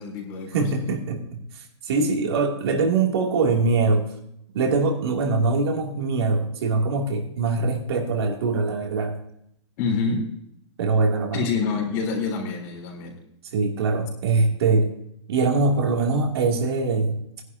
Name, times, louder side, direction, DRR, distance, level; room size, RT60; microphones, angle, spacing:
voice 1, 0.0-0.8 9.8-10.3 11.3-13.2, left 4 dB, 35° left, 0 dB, 3.7 m, -27 dB
voice 2, 0.5-4.1 4.5-9.1 10.8-11.5 13.5-14.9 15.3-17.2, right 3 dB, 60° right, 1 dB, 2.6 m, -23 dB
17.5 x 11.0 x 2.8 m, 0.74 s
hypercardioid pair, 170°, 15 cm